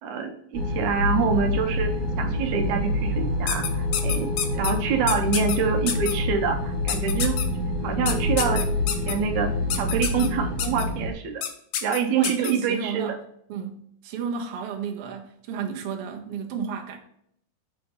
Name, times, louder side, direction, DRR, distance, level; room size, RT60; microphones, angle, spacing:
voice 1, 0.0-7.4 7.8-11.4 11.8-13.2, right 6 dB, 85° right, 2.2 m, -26 dB
sound 1, 0.5-11.1, left 1 dB, 60° left, 0.4 m, -27 dB
sound 2, 3.5-4.7 5.1-5.6 5.9-6.1 6.9-7.4 8.1-9.1 9.7-10.3 10.6-10.8 11.4-11.5 11.7-12.5, left 10 dB, 85° left, 2.1 m, -27 dB
voice 2, 12.1-13.2 13.5-17.0, right 7 dB, 65° right, 1.5 m, -32 dB
6.7 x 3.3 x 5.5 m
omnidirectional pair, 3.4 m